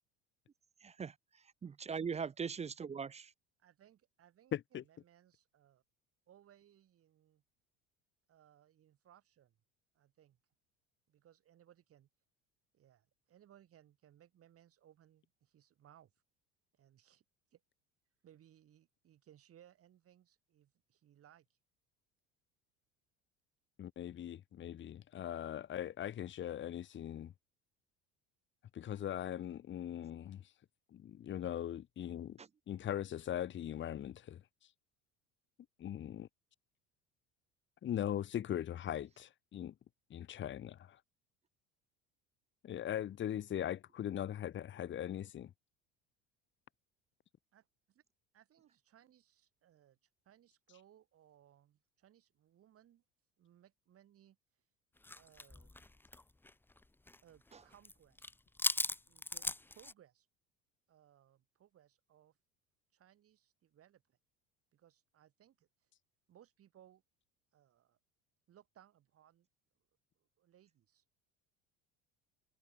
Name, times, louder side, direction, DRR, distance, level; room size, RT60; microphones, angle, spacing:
voice 1, 0.8-1.1 1.6-3.3 32.4-32.5, right 6 dB, 20° right, 0.6 m, -40 dB
voice 2, 3.6-5.8 6.3-7.4 8.3-9.6 9.9-10.4 11.1-12.1 12.7-16.1 16.7-17.2 17.5-17.6 18.2-21.6 47.5-48.0 48.3-50.0 50.2-53.0 53.4-54.4 55.1-55.8 57.2-58.3 58.8-60.3 60.9-62.4 62.9-64.2 64.7-65.7 66.3-67.0 67.5-68.0 68.5-69.5 70.2-71.0, right 11 dB, 45° right, 4.4 m, -65 dB
voice 3, 4.5-4.8 23.8-27.3 28.7-30.4 30.9-32.4 32.7-34.4 35.8-36.3 37.8-39.7 40.1-41.0 42.6-45.5, left 10 dB, 35° left, 1.2 m, -40 dB
sound 1, 55.0-57.2 57.5-57.9 58.2-59.9, left 2 dB, 5° left, 0.8 m, -38 dB
supercardioid pair, 95°, 31 cm